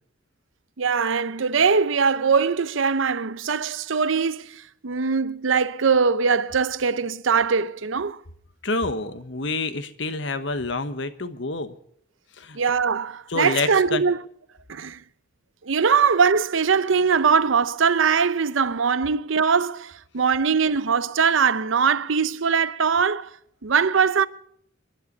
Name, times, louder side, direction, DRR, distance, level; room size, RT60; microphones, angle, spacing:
voice 1, 0.8-8.2 12.5-14.2 14.7-15.0 15.6-23.3 23.6-24.3, right 5 dB, 75° right, 0.7 m, -21 dB
voice 2, 8.6-11.7 12.4-12.6 13.3-14.0, left 3 dB, 65° left, 1.2 m, -28 dB
26.5 x 11.5 x 4.0 m
head